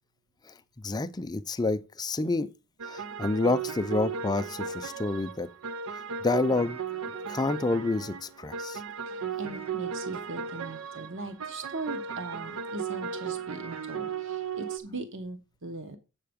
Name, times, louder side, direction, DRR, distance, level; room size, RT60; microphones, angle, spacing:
voice 1, 0.8-2.5 2.8-5.5 6.2-6.8 7.3-8.8, left 2 dB, 20° left, 0.4 m, -28 dB
sound 1, 2.8-14.8, right 6 dB, 85° right, 0.6 m, -36 dB
voice 2, 9.0-16.0, right 3 dB, 60° right, 0.9 m, -39 dB
7.7 x 5.7 x 5.1 m
head